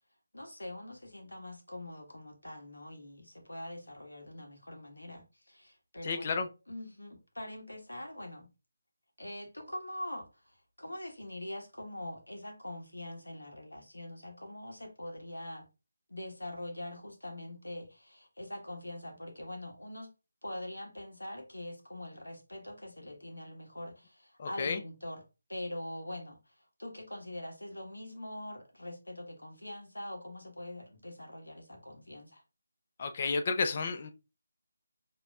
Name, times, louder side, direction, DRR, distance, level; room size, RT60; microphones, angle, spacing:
voice 1, 0.3-8.5 9.2-15.7 16.1-20.1 20.4-25.2 25.5-32.4, left 1 dB, 85° left, 1.4 m, -43 dB
voice 2, 6.0-6.5 24.4-24.8 33.0-34.1, left 4 dB, 40° left, 0.7 m, -31 dB
5.0 x 3.0 x 2.4 m
figure-of-eight pair, 155°, 0 cm